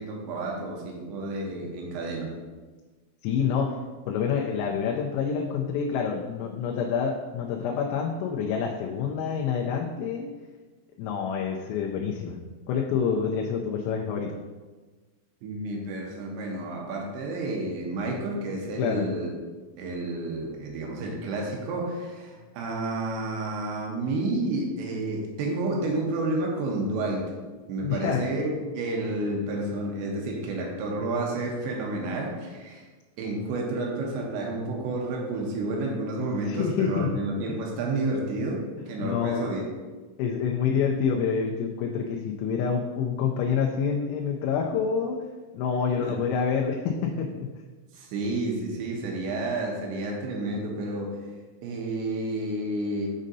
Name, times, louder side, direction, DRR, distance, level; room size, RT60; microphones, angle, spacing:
voice 1, 0.0-2.3 15.4-19.3 19.8-27.2 27.7-32.9 33.2-38.6 38.9-39.6 46.0-46.1 47.9-51.1 51.6-53.3, right 2 dB, 75° right, -1 dB, 3.0 m, -30 dB
voice 2, 3.2-3.7 4.1-10.3 11.0-12.4 12.7-14.4 18.8-19.1 27.8-28.3 36.5-37.1 37.5-37.6 39.0-39.5 40.2-45.2 45.5-47.5, left 6 dB, 90° left, -1 dB, 3.3 m, -27 dB
7.3 x 6.3 x 2.7 m, 1.3 s
omnidirectional pair, 5.8 m